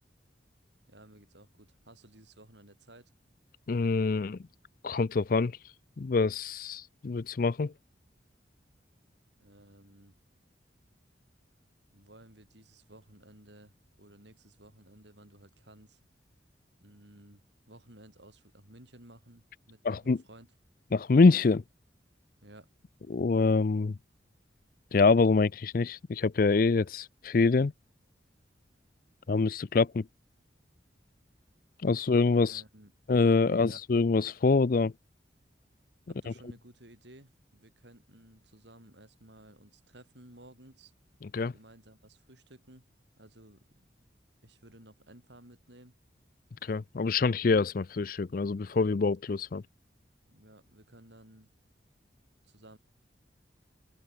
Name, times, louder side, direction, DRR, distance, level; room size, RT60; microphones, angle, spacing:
voice 1, 0.9-3.1 9.1-10.2 11.9-16.0 16.8-20.5 22.4-22.7 32.4-32.9 33.5-33.9 36.1-40.9 41.5-42.9 43.2-43.6 44.4-46.0 50.3-51.5 52.4-52.8, right 1 dB, 75° right, 7.9 m, -55 dB
voice 2, 3.7-4.4 4.8-5.5 6.0-7.7 19.8-20.2 20.9-21.6 23.1-24.0 24.9-27.7 29.3-30.1 31.8-32.6 33.1-34.9 41.3-41.5 46.6-49.6, left 4 dB, 50° left, 0.4 m, -25 dB
open air
head